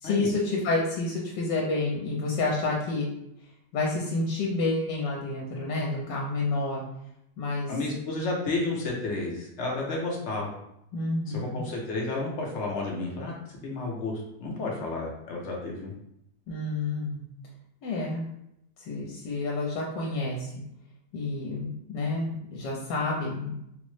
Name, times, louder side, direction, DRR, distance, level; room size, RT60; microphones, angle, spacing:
voice 1, 0.0-3.1 3.7-6.8 7.4-7.7 10.9-11.6 16.5-17.2 17.8-18.2 18.8-20.5 21.1-23.6, left 2 dB, 80° left, -2 dB, 1.3 m, -29 dB
voice 2, 7.7-10.5 11.3-15.9, left 2 dB, 60° left, -2 dB, 0.8 m, -31 dB
3.8 x 2.0 x 3.1 m, 0.79 s
omnidirectional pair, 1.9 m